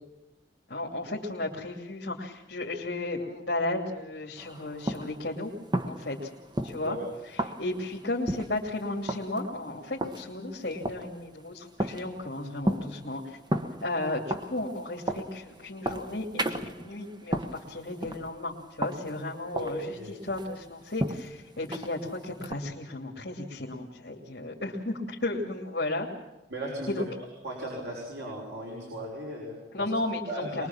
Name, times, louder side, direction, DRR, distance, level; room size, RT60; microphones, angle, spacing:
voice 1, 0.7-5.5 5.8-6.3 6.6-7.0 7.4-13.4 13.8-19.9 20.2-26.1 26.9-27.0 29.7-30.7, left 2 dB, 65° left, -3 dB, 2.7 m, -34 dB
sound 1, 4.4-22.5, right 1 dB, 25° right, 1.1 m, -35 dB
voice 2, 19.5-20.1 26.5-27.0 27.4-29.9 30.3-30.7, right 1 dB, 85° right, -3 dB, 5.8 m, -36 dB
23.0 x 22.0 x 7.3 m, 1.0 s
head